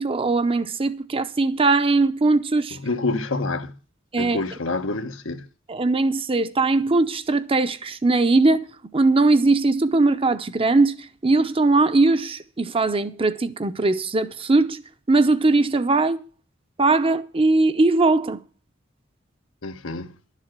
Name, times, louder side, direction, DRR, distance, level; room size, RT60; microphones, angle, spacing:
voice 1, 0.0-2.8 4.1-4.4 5.7-8.7 8.9-14.8 15.1-16.2 16.8-18.4, right 3 dB, 30° right, 0.7 m, -20 dB
voice 2, 2.7-3.8 4.2-5.5 19.6-20.1, left 3 dB, 90° left, 1.2 m, -27 dB
11.5 x 7.5 x 7.4 m
head